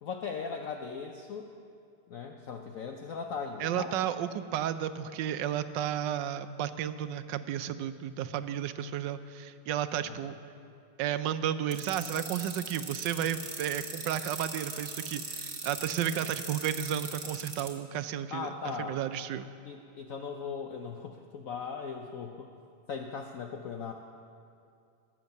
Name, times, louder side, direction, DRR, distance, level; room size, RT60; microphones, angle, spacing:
voice 1, 0.0-1.5 2.1-4.0 10.0-10.3 18.3-19.0 19.6-22.5 22.9-23.9, left 5 dB, 60° left, 3 dB, 0.9 m, -38 dB
voice 2, 3.6-10.3 11.0-19.5, right 10 dB, 75° right, 11 dB, 1.2 m, -33 dB
sound 1, 11.7-17.7, right 4 dB, 45° right, 2.1 m, -39 dB
17.0 x 7.5 x 7.1 m, 2.5 s
omnidirectional pair, 2.0 m